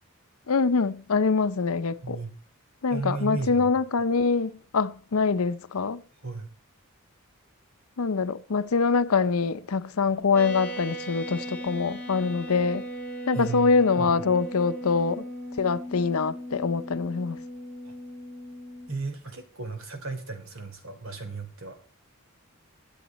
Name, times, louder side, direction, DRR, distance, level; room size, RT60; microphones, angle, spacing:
voice 1, 0.5-2.2 2.8-6.0 8.0-12.9 13.3-15.2 15.6-17.4, left 4 dB, 85° left, 0.7 m, -24 dB
voice 2, 2.9-3.7 6.2-6.5 13.3-14.1 17.8-17.9 18.9-21.7, right 3 dB, 65° right, 3.3 m, -34 dB
sound 1, 10.3-18.9, equal, 10° left, 4.7 m, -38 dB
23.0 x 8.0 x 4.2 m
head